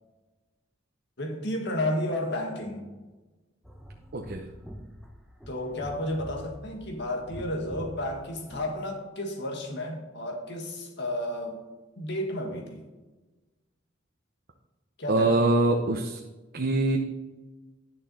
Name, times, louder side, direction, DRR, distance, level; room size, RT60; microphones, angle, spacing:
voice 1, 1.2-2.9 5.5-11.6 12.0-12.8 15.0-15.5, left 1 dB, 65° left, 2 dB, 1.9 m, -32 dB
sound 1, 3.6-8.7, equal, ahead, 0.9 m, -45 dB
voice 2, 4.1-4.4 15.1-16.2 16.5-17.0, right 2 dB, 55° right, 2 dB, 0.8 m, -24 dB
11.0 x 6.3 x 4.1 m, 1.2 s
head